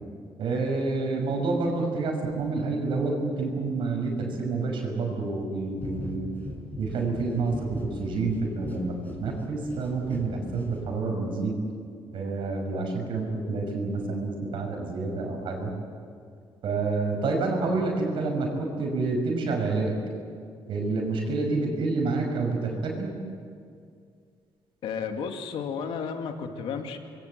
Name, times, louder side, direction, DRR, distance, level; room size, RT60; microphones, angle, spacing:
voice 1, 0.4-6.2 6.8-8.9 9.2-11.6 12.1-15.7 16.6-19.9 20.7-23.1, right 3 dB, 70° right, 1 dB, 6.2 m, -28 dB
sound 1, 5.8-11.3, left 1 dB, 15° left, 6.0 m, -40 dB
voice 2, 24.8-27.0, left 6 dB, 85° left, 5 dB, 2.3 m, -32 dB
26.5 x 21.5 x 8.1 m, 2.2 s
cardioid pair, 130°, 9 cm